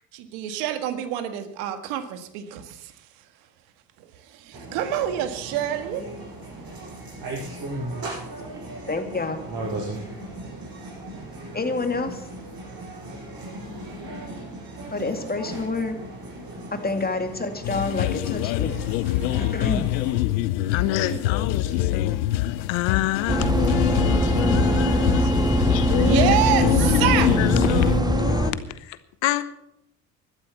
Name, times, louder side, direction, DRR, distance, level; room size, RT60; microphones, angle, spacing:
voice 1, 0.1-2.9 4.0-6.0 20.9-21.3 25.9-27.3, right 10 dB, 75° right, 1.7 m, -27 dB
sound 1, 4.5-20.1, right 1 dB, 45° right, 7.5 m, -37 dB
voice 2, 8.9-9.4 11.5-12.2 14.9-16.0 16.7-18.8 19.0-19.9, left 3 dB, 20° left, 2.3 m, -28 dB
sound 2, 17.6-28.0, left 15 dB, 85° left, 0.7 m, -25 dB
voice 3, 20.7-25.3 25.6-29.4, left 12 dB, 65° left, 1.1 m, -27 dB
sound 3, 23.3-28.5, right 1 dB, 10° right, 1.4 m, -22 dB
12.5 x 12.0 x 7.1 m
hypercardioid pair, 65°, 49 cm